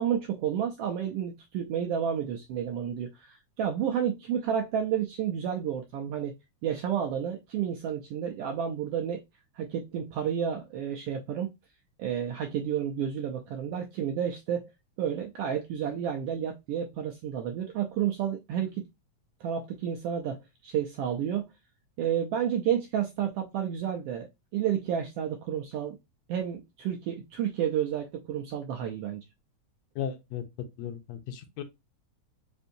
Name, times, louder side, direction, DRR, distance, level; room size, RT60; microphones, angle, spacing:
voice 1, 0.0-6.3 6.6-9.2 9.5-11.5 12.0-14.7 15.0-18.9 19.4-21.5 22.0-26.0 26.3-29.2, right 9 dB, 85° right, 1.3 m, -31 dB
voice 2, 30.0-30.4 30.8-31.6, left 8 dB, 75° left, 1.8 m, -35 dB
5.3 x 2.6 x 2.5 m
omnidirectional pair, 3.3 m